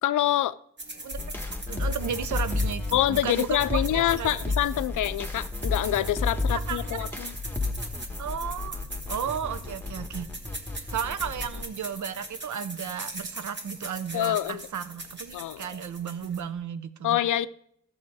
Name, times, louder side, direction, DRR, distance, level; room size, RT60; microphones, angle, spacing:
voice 1, 0.0-0.6 2.9-7.3 14.1-14.6 15.3-15.8 17.0-17.5, left 12 dB, 85° left, 0.5 m, -26 dB
sound 1, 0.8-16.6, right 2 dB, 35° right, 1.8 m, -41 dB
voice 2, 1.0-4.3 6.5-7.3 8.2-10.3 10.9-17.2, right 8 dB, 75° right, 0.7 m, -34 dB
sound 2, 1.1-11.6, left 3 dB, 5° left, 1.2 m, -32 dB
13.5 x 7.2 x 4.7 m
cardioid pair, 90°, 30 cm